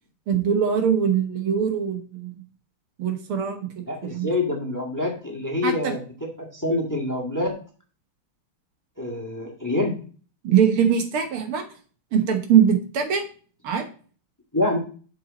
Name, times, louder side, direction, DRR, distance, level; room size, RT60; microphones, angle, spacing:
voice 1, 0.3-2.3 3.0-4.3 5.6-5.9 10.4-11.7 12.1-13.3 13.6-13.9, right 8 dB, 80° right, 5 dB, 2.1 m, -22 dB
voice 2, 3.9-7.6 9.0-10.0 14.5-14.8, left 2 dB, 10° left, 0 dB, 1.3 m, -26 dB
7.1 x 6.0 x 4.1 m, 0.39 s
omnidirectional pair, 2.4 m